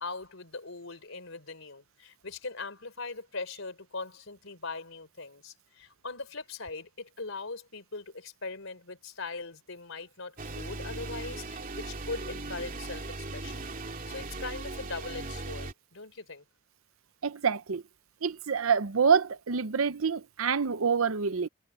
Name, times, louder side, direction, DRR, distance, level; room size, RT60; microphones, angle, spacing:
voice 1, 0.0-16.4, left 3 dB, 70° left, 4.8 m, -40 dB
sound 1, 10.4-15.7, right 2 dB, 45° right, 3.0 m, -38 dB
voice 2, 17.2-17.8 18.2-21.5, right 6 dB, 85° right, 0.8 m, -26 dB
head